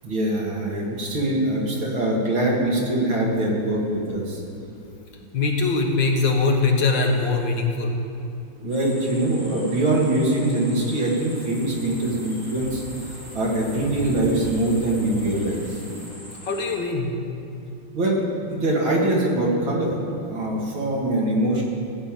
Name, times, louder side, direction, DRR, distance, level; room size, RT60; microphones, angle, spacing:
voice 1, 0.0-4.4 8.6-15.8 17.9-20.0 20.2-21.6, right 1 dB, 80° right, -3 dB, 2.9 m, -23 dB
voice 2, 5.3-8.0 16.4-17.2, left 3 dB, 65° left, 1 dB, 2.0 m, -22 dB
sound 1, 8.7-16.8, equal, 10° left, 2.9 m, -40 dB
15.0 x 5.7 x 9.1 m, 2.6 s
omnidirectional pair, 2.2 m